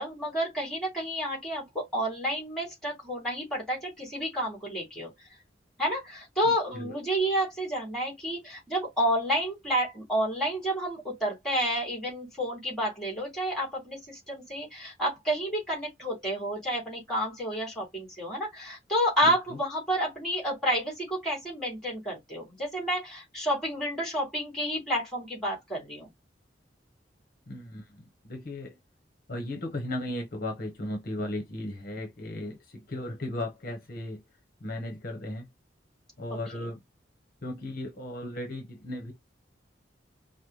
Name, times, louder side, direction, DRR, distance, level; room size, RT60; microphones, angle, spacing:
voice 1, 0.0-5.1 5.8-26.1 32.4-32.5 36.5-36.6, equal, 5° left, 3.3 m, -30 dB
voice 2, 19.2-19.6 27.5-28.8 29.3-34.2 34.6-35.5 36.2-36.8 37.4-39.1, left 1 dB, 55° left, 1.0 m, -36 dB
5.2 x 2.2 x 3.2 m
head